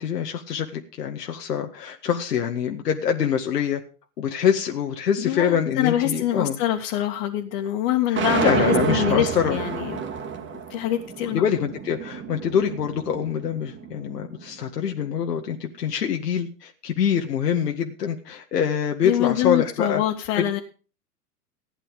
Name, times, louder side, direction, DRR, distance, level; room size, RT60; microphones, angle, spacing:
voice 1, 0.0-3.8 4.2-6.6 8.1-9.6 11.3-20.0 20.4-20.5, left 8 dB, 75° left, 3 dB, 2.0 m, -25 dB
voice 2, 5.2-10.0 10.7-11.5 19.0-20.6, left 12 dB, 50° left, 0 dB, 2.3 m, -25 dB
sound 1, 8.1-14.3, right 6 dB, 25° right, 2.3 m, -29 dB
15.5 x 10.0 x 4.9 m, 0.36 s
hypercardioid pair, 105°, 48 cm